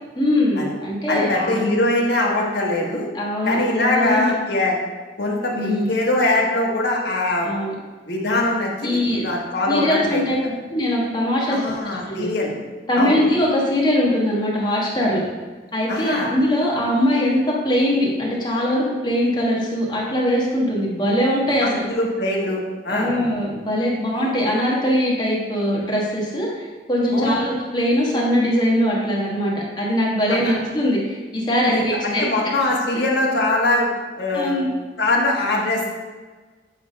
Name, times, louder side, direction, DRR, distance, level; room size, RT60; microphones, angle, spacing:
voice 1, 0.1-1.7 3.1-4.3 5.5-5.8 7.4-7.7 8.8-9.3 9.7-10.3 10.7-12.3 12.9-15.2 15.7-21.8 22.9-32.3 34.3-34.7, equal, 25° left, -4 dB, 1.3 m, -21 dB
voice 2, 1.1-3.1 3.4-4.8 5.2-7.5 8.0-10.2 11.5-12.6 13.0-13.2 15.9-16.3 21.6-23.1 27.1-27.4 30.3-30.6 31.7-34.5 35.0-35.9, left 2 dB, 65° left, -2 dB, 1.4 m, -22 dB
8.7 x 3.4 x 5.2 m, 1.3 s
head